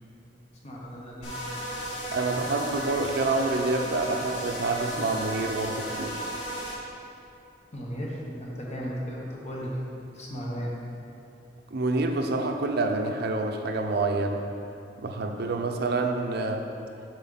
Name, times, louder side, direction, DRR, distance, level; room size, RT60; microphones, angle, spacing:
voice 1, 0.6-1.3 7.7-9.8 10.1-10.7, equal, 40° left, -4 dB, 1.3 m, -35 dB
sound 1, 1.2-6.8, equal, 85° left, 1.6 m, -34 dB
voice 2, 2.1-6.2 11.7-14.4 15.0-16.6, right 3 dB, 60° right, 4 dB, 0.6 m, -27 dB
7.5 x 4.2 x 5.7 m, 2.7 s
head